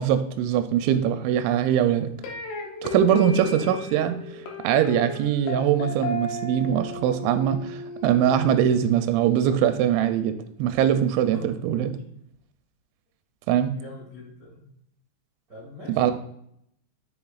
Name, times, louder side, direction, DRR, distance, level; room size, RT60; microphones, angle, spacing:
voice 1, 0.0-2.1 2.8-4.2 4.6-11.9 13.5-13.7 15.9-16.1, right 10 dB, 85° right, 9 dB, 2.9 m, -22 dB
sound 1, 2.2-9.3, left 3 dB, 80° left, 1.9 m, -35 dB
voice 2, 13.7-14.6 15.5-16.1, left 2 dB, 70° right, -8 dB, 0.8 m, -44 dB
6.9 x 6.8 x 2.3 m, 0.71 s
omnidirectional pair, 5.2 m